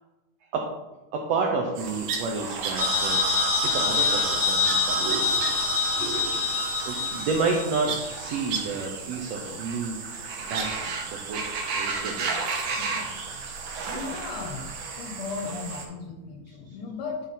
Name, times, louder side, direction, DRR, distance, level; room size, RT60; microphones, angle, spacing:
voice 1, 1.1-3.2 3.6-5.4 6.4-12.7, right 4 dB, 90° right, 1 dB, 1.4 m, -31 dB
sound 1, 1.8-15.8, right 5 dB, 75° right, 2.5 m, -33 dB
sound 2, 2.8-8.0, left 3 dB, 50° right, 1.7 m, -25 dB
voice 2, 13.9-14.7 15.0-17.2, left 4 dB, 70° left, 1 dB, 1.8 m, -35 dB
10.5 x 3.9 x 4.1 m, 1.1 s
omnidirectional pair, 4.0 m